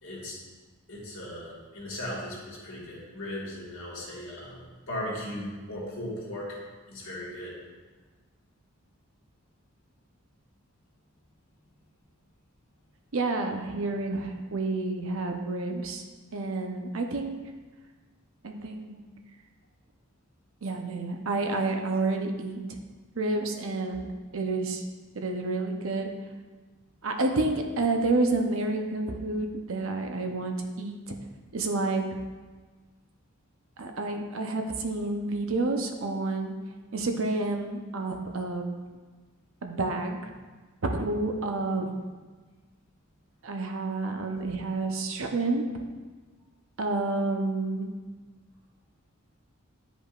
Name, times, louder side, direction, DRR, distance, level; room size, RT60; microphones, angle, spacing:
voice 1, 0.0-0.4 0.9-6.6 6.9-7.5, left 1 dB, 70° left, -5 dB, 1.8 m, -37 dB
voice 2, 13.1-16.0 16.3-17.4 18.4-19.0 20.6-22.6 23.2-24.8 25.1-26.1 27.0-31.1 31.5-32.2 33.8-36.5 36.9-38.6 39.6-40.3 40.9-41.9 43.4-45.6 46.8-47.9, right 2 dB, 70° right, 4 dB, 0.7 m, -29 dB
9.9 x 5.1 x 2.5 m, 1.4 s
head